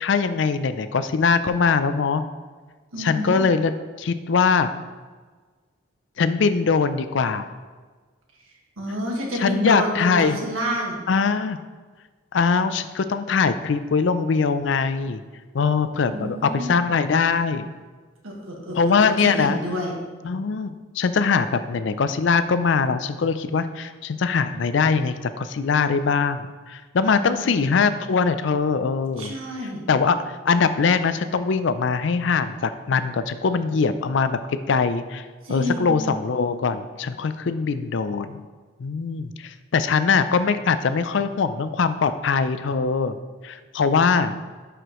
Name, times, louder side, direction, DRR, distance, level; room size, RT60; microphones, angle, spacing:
voice 1, 0.0-2.2 3.0-3.7 4.0-4.7 6.2-7.5 9.3-10.4 11.1-11.6 12.3-15.2 15.5-17.7 18.7-19.6 20.2-29.3 29.9-35.2 35.5-38.4 38.8-43.2 43.4-44.3, left 5 dB, 60° left, 12 dB, 0.4 m, -22 dB
voice 2, 2.9-3.4 8.8-11.1 16.0-16.9 18.2-19.9 27.1-27.6 29.2-29.8 35.4-36.1, equal, 85° right, -1 dB, 1.6 m, -29 dB
11.0 x 4.9 x 3.0 m, 1.4 s
head